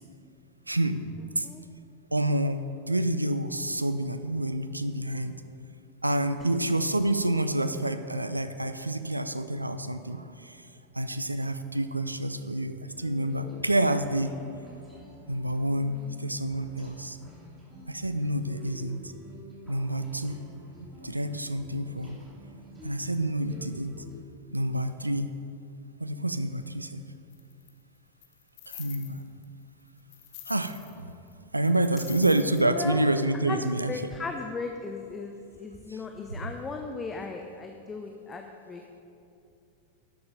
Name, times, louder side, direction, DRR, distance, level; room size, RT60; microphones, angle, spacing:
voice 1, 0.7-1.0 1.4-1.5 2.1-5.4 6.0-10.6 10.9-14.3 15.3-17.2 17.9-19.0 19.7-20.4 21.0-22.2 22.8-24.0 24.5-25.3 26.0-27.0 28.7-29.2 30.5-31.1 31.5-34.0 35.9-36.0 36.4-36.5, right 1 dB, 85° right, 11 dB, 0.5 m, -28 dB
sound 1, 12.9-24.2, left 1 dB, 15° right, 2.8 m, -48 dB
sound 2, 27.3-27.7 28.2-29.4 29.8-31.0 31.3-31.4 31.6-32.7, left 14 dB, 45° left, 0.9 m, -46 dB
voice 2, 32.6-33.0 33.5-39.0, left 4 dB, 20° left, 4 dB, 0.6 m, -37 dB
12.0 x 7.2 x 5.2 m, 2.6 s
figure-of-eight pair, 90°, 0 cm